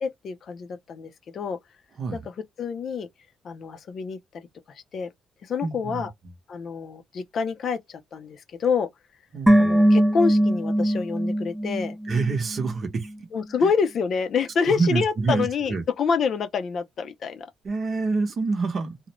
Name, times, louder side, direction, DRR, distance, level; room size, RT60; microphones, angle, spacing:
voice 1, 0.0-1.6 2.1-2.2 2.6-3.1 3.4-5.1 5.4-6.1 6.5-8.9 9.6-12.0 13.3-17.5, left 5 dB, 60° left, 0.5 m, -27 dB
voice 2, 5.6-6.1 9.3-9.7 12.0-13.1 13.6-13.7 14.6-15.8 17.6-19.0, right 4 dB, 50° right, 0.8 m, -27 dB
sound 1, 9.5-12.8 13.0-13.1, right 1 dB, 5° right, 0.4 m, -21 dB
2.5 x 2.1 x 2.9 m
cardioid pair, 90°, 0 cm